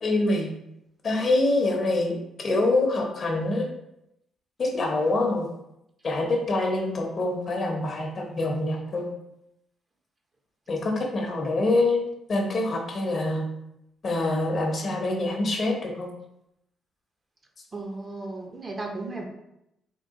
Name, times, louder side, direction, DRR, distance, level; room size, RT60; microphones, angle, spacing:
voice 1, 0.0-0.5 1.0-3.7 4.6-5.5 6.0-9.1 10.7-13.5 14.0-16.1, left 2 dB, 45° left, 2 dB, 0.8 m, -25 dB
voice 2, 17.7-19.2, right 2 dB, 30° right, 2 dB, 0.6 m, -35 dB
3.7 x 2.3 x 3.6 m, 0.84 s
cardioid pair, 90°, 0 cm